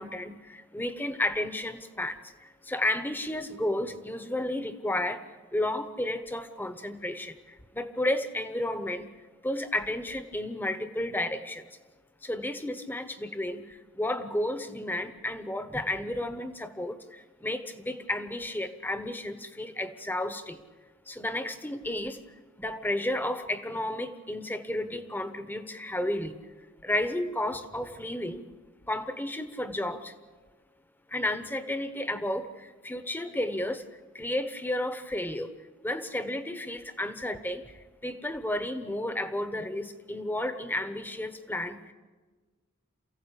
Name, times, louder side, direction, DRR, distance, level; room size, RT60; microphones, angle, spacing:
voice 1, 0.0-9.1 9.4-11.7 12.2-20.6 21.1-22.2 22.6-26.4 26.8-28.4 28.9-30.1 31.1-33.8 34.1-35.5 35.8-41.9, left 1 dB, 10° left, 9 dB, 1.2 m, -32 dB
28.5 x 16.0 x 8.5 m, 1.4 s
head